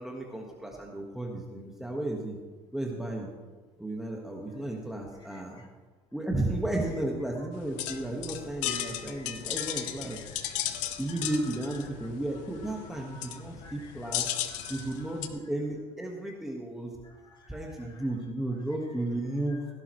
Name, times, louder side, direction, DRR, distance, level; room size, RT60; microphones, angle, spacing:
voice 1, 0.0-2.4 2.7-3.3 3.8-5.6 6.1-10.2 11.0-14.2 14.7-16.9 17.5-19.7, right 1 dB, 5° right, 0 dB, 1.6 m, -33 dB
voice 2, 5.3-5.7 7.4-7.5 8.7-10.7 12.9-15.2 17.0-18.0, equal, 35° left, 0 dB, 2.8 m, -54 dB
sound 1, 7.5-15.3, left 12 dB, 75° left, 0.9 m, -35 dB
16.5 x 11.5 x 3.2 m, 1.3 s
supercardioid pair, 100°, 13 cm